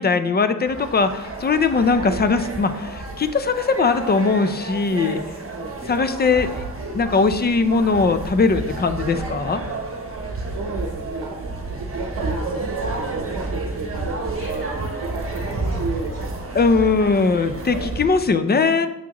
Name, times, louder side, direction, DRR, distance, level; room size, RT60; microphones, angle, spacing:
voice 1, 0.0-5.2 5.9-6.6 6.9-9.6 16.5-18.9, left 4 dB, 30° left, 10 dB, 0.4 m, -20 dB
sound 1, 0.7-18.1, right 2 dB, 40° right, 1.1 m, -30 dB
voice 2, 10.5-16.4, right 3 dB, 60° right, 2 dB, 0.8 m, -33 dB
7.2 x 6.1 x 2.9 m, 0.89 s
wide cardioid pair, 130°, 36 cm